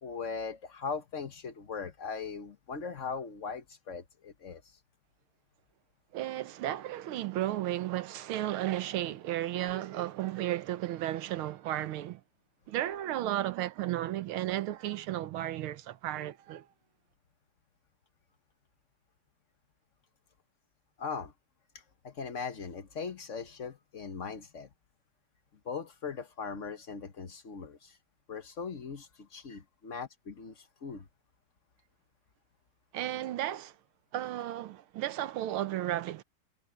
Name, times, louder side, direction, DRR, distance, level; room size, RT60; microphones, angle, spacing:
voice 1, 0.0-4.6 21.0-21.3 22.0-24.7 25.6-28.0 28.3-31.1, left 5 dB, 45° left, 1.1 m, -39 dB
voice 2, 6.1-12.2 12.7-16.7 32.9-33.7 34.1-36.2, right 13 dB, 80° right, 1.7 m, -34 dB
omnidirectional pair, 2.3 m